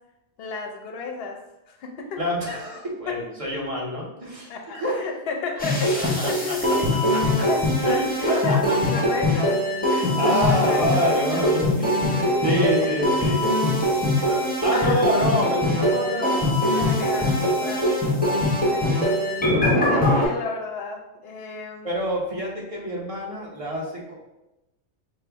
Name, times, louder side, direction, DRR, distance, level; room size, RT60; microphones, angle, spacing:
voice 1, 0.4-2.2 3.1-3.2 4.5-11.5 12.1-12.4 12.8-13.3 14.1-15.1 16.7-18.0 18.7-19.2 19.6-21.9, left 5 dB, 65° left, 3 dB, 0.7 m, -33 dB
voice 2, 2.2-5.0 5.9-6.6 6.9-7.5 7.8-8.8 9.9-12.0 12.4-13.4 14.3-16.9 17.2-18.8 19.4-19.8 21.8-24.1, equal, 30° right, -3 dB, 0.8 m, -28 dB
sound 1, 5.6-20.2, left 1 dB, 10° left, 0.7 m, -22 dB
5.3 x 2.2 x 3.4 m, 0.97 s
omnidirectional pair, 1.2 m